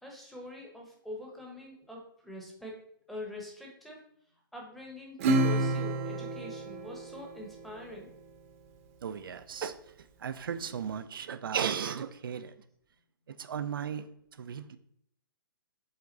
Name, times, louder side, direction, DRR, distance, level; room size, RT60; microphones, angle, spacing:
voice 1, 0.0-2.8 3.1-4.0 4.5-8.1, left 1 dB, ahead, -1 dB, 1.0 m, -44 dB
Acoustic guitar / Strum, 5.2-8.1, right 2 dB, 40° right, 0.9 m, -30 dB
voice 2, 9.0-9.8 10.2-12.5 13.3-14.1 14.4-14.8, right 7 dB, 70° right, 12 dB, 0.6 m, -35 dB
7.8 x 3.5 x 4.1 m, 0.70 s
hypercardioid pair, 160°, 12 cm